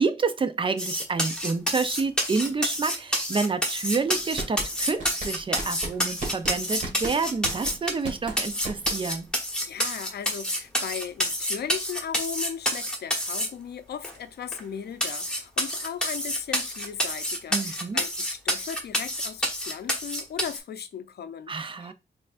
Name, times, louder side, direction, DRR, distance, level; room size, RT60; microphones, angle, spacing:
voice 1, 0.0-9.3 17.5-18.0 21.5-21.9, right 4 dB, 30° right, 0.4 m, -28 dB
sound 1, 0.8-8.1 8.4-13.5 14.0-14.1 14.5-14.6 15.0-20.6, equal, 5° left, 1.2 m, -28 dB
sound 2, 4.2-9.3, right 2 dB, 45° right, 1.7 m, -36 dB
voice 2, 9.6-21.9, left 8 dB, 65° left, 0.5 m, -37 dB
4.4 x 3.7 x 2.4 m
wide cardioid pair, 130°, 18 cm